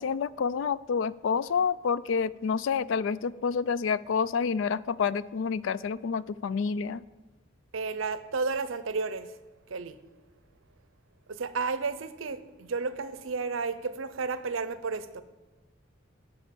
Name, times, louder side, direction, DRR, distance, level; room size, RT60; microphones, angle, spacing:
voice 1, 0.0-7.0, left 6 dB, 70° left, 19 dB, 0.3 m, -28 dB
voice 2, 7.7-9.3 9.7-10.0 11.3-15.2, right 4 dB, 75° right, 13 dB, 0.7 m, -32 dB
11.0 x 5.4 x 8.4 m, 1.2 s
head